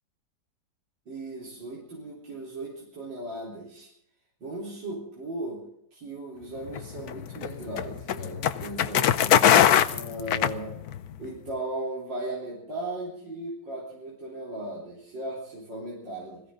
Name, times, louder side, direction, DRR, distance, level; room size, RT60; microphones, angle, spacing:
voice 1, 1.1-3.9 4.4-5.6 5.9-9.4 9.9-10.8 11.2-16.4, right 2 dB, 70° right, -6 dB, 4.7 m, -37 dB
sound 1, 6.7-11.1, left 10 dB, 65° left, 1.1 m, -22 dB
21.0 x 15.5 x 3.8 m, 0.71 s
omnidirectional pair, 2.0 m